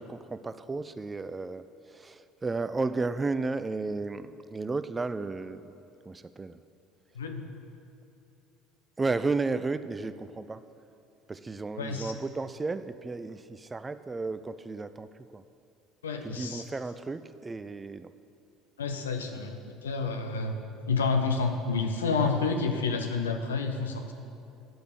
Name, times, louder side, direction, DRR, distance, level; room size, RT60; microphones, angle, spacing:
voice 1, 0.0-6.6 9.0-10.6 11.3-15.4 16.2-18.1 22.2-22.3, right 3 dB, 20° right, 13 dB, 0.4 m, -33 dB
voice 2, 11.8-12.1 16.0-16.6 18.8-20.5 20.9-24.1, left 4 dB, 75° left, 5 dB, 0.8 m, -29 dB
9.3 x 6.7 x 8.0 m, 2.6 s
figure-of-eight pair, 60°, 0 cm